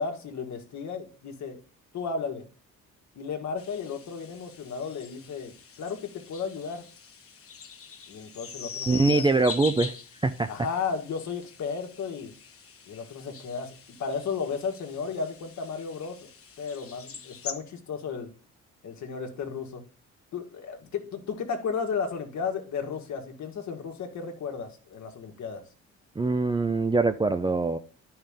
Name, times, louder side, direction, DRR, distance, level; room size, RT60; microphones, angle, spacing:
voice 1, 0.0-1.6 1.9-2.4 3.1-6.8 8.1-9.2 10.5-12.3 12.9-16.3 16.6-18.3 18.8-19.8 20.3-25.6, left 5 dB, 65° left, 3 dB, 1.8 m, -34 dB
sound 1, 3.6-17.5, left 6 dB, 50° left, 1.3 m, -43 dB
voice 2, 8.9-9.9 10.2-10.5 26.2-27.8, right 3 dB, 15° right, 9 dB, 0.5 m, -23 dB
10.0 x 5.6 x 3.6 m, 0.37 s
cardioid pair, 90°, 30 cm